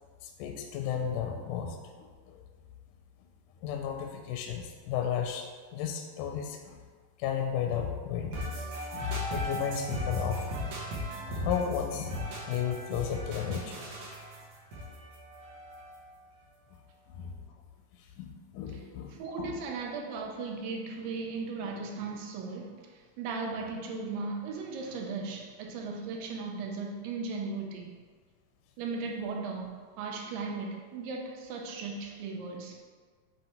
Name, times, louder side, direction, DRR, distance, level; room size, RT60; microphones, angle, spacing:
voice 1, 0.2-2.4 3.6-6.8 7.2-8.4 8.9-10.5 11.3-12.2 12.5-13.8 17.2-17.3 18.2-19.5, left 8 dB, 80° left, 3 dB, 1.9 m, -33 dB
sound 1, 8.3-16.2, equal, 60° right, 2.5 m, -38 dB
voice 2, 19.1-28.0 28.8-32.8, right 4 dB, 80° right, 1 dB, 2.5 m, -37 dB
8.4 x 3.1 x 4.3 m, 1.5 s
omnidirectional pair, 4.0 m